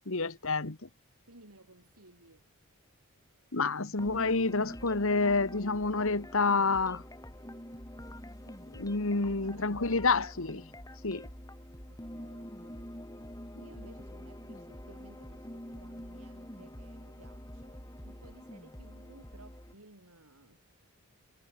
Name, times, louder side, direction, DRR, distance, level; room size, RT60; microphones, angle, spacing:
voice 1, 0.1-0.9 3.5-7.0 8.7-10.6 11.0-11.3, left 3 dB, 65° left, 1.6 m, -28 dB
voice 2, 1.3-2.5 8.9-10.2 11.9-20.6, right 2 dB, 85° right, 7.7 m, -58 dB
sound 1, 4.0-19.7, equal, 15° left, 7.0 m, -46 dB
head